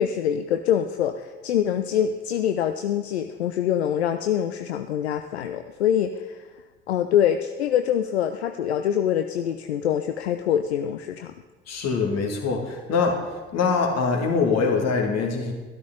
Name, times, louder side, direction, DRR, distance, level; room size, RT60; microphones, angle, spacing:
voice 1, 0.0-6.4 6.9-11.3, left 9 dB, 80° left, 8 dB, 0.5 m, -24 dB
voice 2, 11.7-13.2 13.5-15.5, left 5 dB, 55° left, 2 dB, 2.2 m, -23 dB
12.5 x 12.5 x 3.8 m, 1.3 s
figure-of-eight pair, 45°, 32 cm